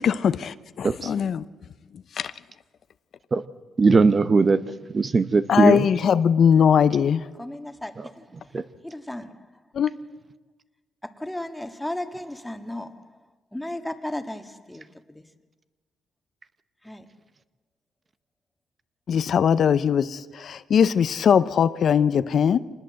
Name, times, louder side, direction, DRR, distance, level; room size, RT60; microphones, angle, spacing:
voice 1, 0.0-1.4 2.1-2.3 5.5-7.3 9.7-9.9 19.1-22.6, left 7 dB, 60° left, 0.8 m, -20 dB
voice 2, 3.8-4.6 4.9-5.9 8.0-8.1 8.5-8.6, right 4 dB, 35° right, 0.9 m, -19 dB
voice 3, 7.4-8.2 8.8-9.3 11.2-13.0 13.5-14.8 15.1-15.2 16.9-17.0, left 1 dB, 10° left, 1.8 m, -34 dB
26.0 x 20.0 x 7.7 m
cardioid pair, 90°, 0 cm